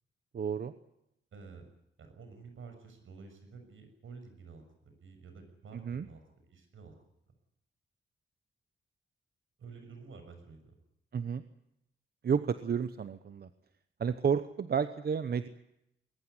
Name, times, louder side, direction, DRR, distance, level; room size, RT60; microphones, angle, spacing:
voice 1, 0.3-0.7 5.7-6.1 11.1-11.4 12.2-13.5 14.0-15.5, right 7 dB, 50° right, 11 dB, 1.0 m, -31 dB
voice 2, 1.3-1.6 2.0-6.9 9.6-10.7, right 4 dB, 75° right, 6 dB, 6.8 m, -51 dB
21.5 x 19.0 x 9.7 m, 0.82 s
wide cardioid pair, 180°, 21 cm